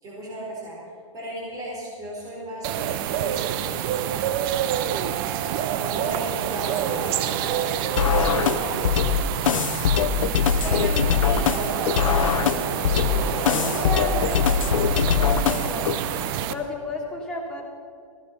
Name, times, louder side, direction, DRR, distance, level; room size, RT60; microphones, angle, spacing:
voice 1, 0.0-4.2 5.6-7.5 8.3-10.0 10.4-13.5, right 1 dB, 20° right, -5 dB, 4.4 m, -37 dB
sound 1, 2.6-16.5, right 10 dB, 40° right, 0.7 m, -27 dB
Wind / Rain, 4.8-16.3, right 2 dB, 85° right, 3.7 m, -36 dB
sound 2, 8.0-16.0, left 8 dB, 75° left, 0.7 m, -22 dB
voice 2, 10.6-11.0 13.4-15.9 16.5-17.6, left 2 dB, 5° left, -4 dB, 3.2 m, -33 dB
16.0 x 12.0 x 5.5 m, 2.2 s
hypercardioid pair, 140°, 17 cm